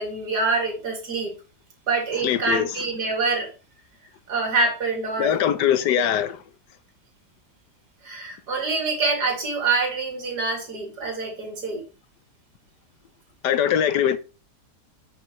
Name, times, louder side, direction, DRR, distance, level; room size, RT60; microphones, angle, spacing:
voice 1, 0.0-1.3 1.9-3.5 4.3-5.3 5.9-6.1 8.0-11.8, right 3 dB, 80° right, 3.0 m, -25 dB
voice 2, 2.2-2.7 5.2-6.4 13.4-14.2, left 9 dB, 85° left, 1.4 m, -21 dB
10.0 x 5.5 x 3.2 m
omnidirectional pair, 1.8 m